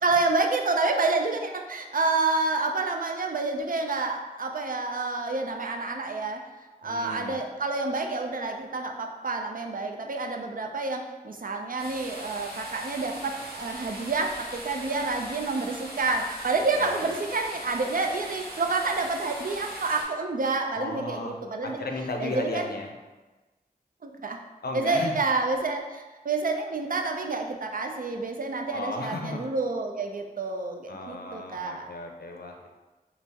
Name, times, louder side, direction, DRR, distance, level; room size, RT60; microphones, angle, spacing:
voice 1, 0.0-6.4 6.8-21.8 22.2-22.6 24.0-24.4 24.7-31.9, right 3 dB, 65° right, 3 dB, 0.4 m, -28 dB
voice 2, 6.8-7.4 16.8-17.1 20.7-22.9 24.6-25.2 28.7-29.5 30.9-32.8, left 2 dB, 80° left, 2 dB, 0.5 m, -35 dB
sound 1, 11.8-20.0, right 1 dB, 80° right, 0.8 m, -40 dB
4.1 x 2.0 x 3.4 m, 1.2 s
wide cardioid pair, 45°, 16 cm